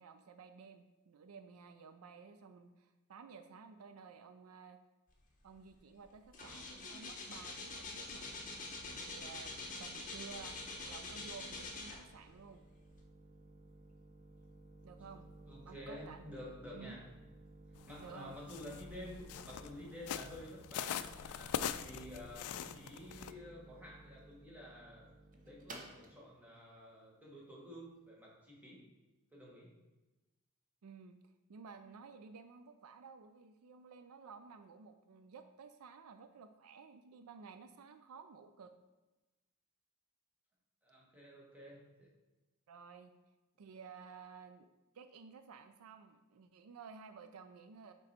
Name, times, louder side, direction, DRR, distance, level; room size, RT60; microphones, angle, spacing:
voice 1, 0.0-4.8 5.4-8.3 8.9-10.6 10.9-12.6 14.8-15.3 15.7-16.4 16.7-17.0 18.0-18.4 30.8-38.7 42.7-43.1 43.6-44.7 44.9-47.9, right 5 dB, 70° right, 9 dB, 0.4 m, -54 dB
sound 1, 5.6-5.8 6.1-12.3 12.9-13.0, left 2 dB, 35° left, 1.0 m, -45 dB
sound 2, 10.7-28.2, right 1 dB, 35° right, 0.9 m, -57 dB
voice 2, 15.5-17.0 17.9-21.6 21.8-25.1 25.4-28.8 29.3-29.7 40.8-42.1, equal, 5° right, -4 dB, 1.5 m, -51 dB
sound 3, 17.8-23.3, left 9 dB, 75° left, 0.3 m, -43 dB
6.6 x 4.7 x 4.2 m, 1.1 s
head